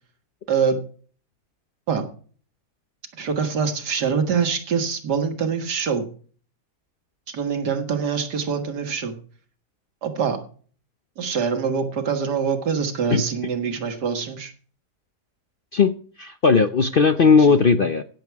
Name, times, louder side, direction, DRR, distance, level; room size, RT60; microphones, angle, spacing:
voice 1, 0.5-0.8 1.9-2.0 3.2-6.0 7.3-9.2 10.0-10.4 11.2-14.5 17.2-17.6, right 6 dB, 85° right, 6 dB, 2.2 m, -24 dB
voice 2, 16.2-18.0, left 5 dB, 55° left, 9 dB, 0.6 m, -17 dB
16.5 x 7.3 x 4.7 m, 0.43 s
omnidirectional pair, 1.7 m